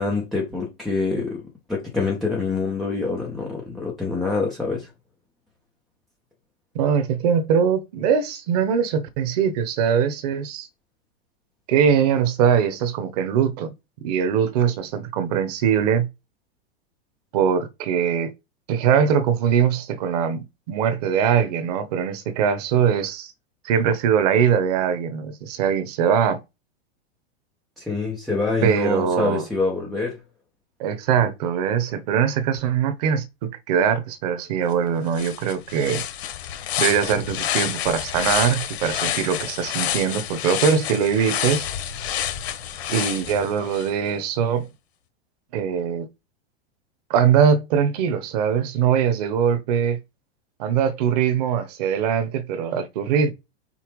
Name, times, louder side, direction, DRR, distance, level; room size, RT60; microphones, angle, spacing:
voice 1, 0.0-4.9 27.8-30.2, left 4 dB, ahead, 0.3 m, -26 dB
voice 2, 6.7-10.7 11.7-13.7 14.0-16.1 17.3-18.3 18.7-23.3 23.6-26.4 28.6-29.5 30.8-36.0 36.8-41.7 42.9-44.7 45.5-46.1 47.1-50.0 50.6-53.3, right 7 dB, 40° right, 1.1 m, -22 dB
sound 1, 34.7-34.8 35.1-43.9, left 10 dB, 90° left, 1.7 m, -28 dB
5.7 x 4.4 x 4.7 m
supercardioid pair, 175°, 31 cm